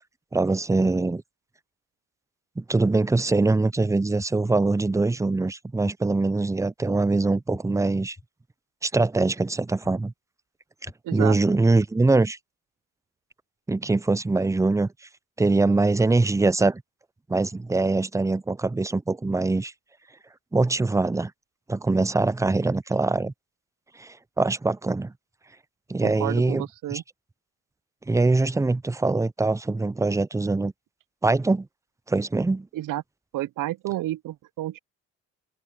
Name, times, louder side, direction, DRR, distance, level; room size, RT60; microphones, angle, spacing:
voice 1, 0.3-1.2 2.6-8.2 8.8-10.1 10.8-12.4 13.7-14.9 15.4-16.8 17.3-19.7 20.5-21.3 21.7-23.3 24.0-25.1 25.9-26.7 26.9-27.0 28.1-30.7 31.2-31.7 32.1-32.7, right 3 dB, 10° right, 0.5 m, -23 dB
Heartbeat Loop, 4.2-4.3 4.8-4.9 5.8-5.9 6.5-6.6 7.5-7.6 8.2-8.3 9.2-9.3 9.8-9.9 10.8-10.9 11.5-11.6, left 3 dB, 25° left, 5.5 m, -42 dB
voice 2, 11.0-11.4 26.0-27.0 32.7-33.0 33.3-34.8, right 15 dB, 65° right, 0.7 m, -30 dB
supercardioid pair, 60°, 35 cm